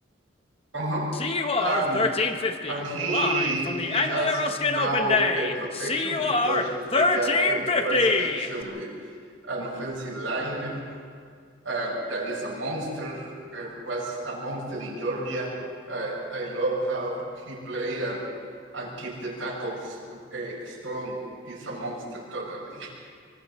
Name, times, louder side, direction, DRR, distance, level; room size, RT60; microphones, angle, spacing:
voice 1, 0.7-1.1 1.6-2.0 2.7-8.9 9.4-10.8 11.6-15.6 15.9-18.3 18.7-21.2 21.4-23.0, right 2 dB, 80° right, -6 dB, 6.6 m, -31 dB
Human voice, 1.1-8.5, left 3 dB, 30° left, 0.9 m, -25 dB
25.5 x 24.5 x 4.3 m, 2.1 s
head